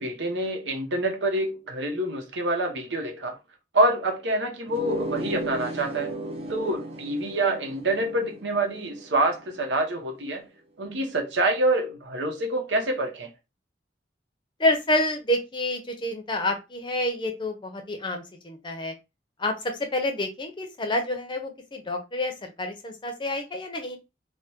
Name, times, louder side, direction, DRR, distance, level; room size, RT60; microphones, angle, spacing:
voice 1, 0.0-3.4 3.7-6.1 6.5-10.4 10.8-13.3, right 1 dB, 90° right, 0.8 m, -26 dB
sound 1, 4.7-10.0, right 1 dB, 35° right, 0.5 m, -36 dB
voice 2, 14.6-18.9 19.4-24.0, left 1 dB, 25° left, 0.6 m, -28 dB
3.3 x 2.1 x 2.9 m
head